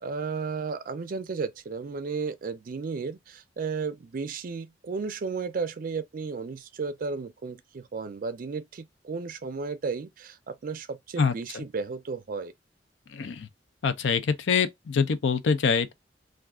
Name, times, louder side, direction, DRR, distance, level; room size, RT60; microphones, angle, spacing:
voice 1, 0.0-12.5, right 4 dB, 50° right, 0.4 m, -34 dB
voice 2, 11.2-11.6 13.1-13.5 13.8-15.9, left 5 dB, 85° left, 0.5 m, -25 dB
2.4 x 2.3 x 3.5 m
head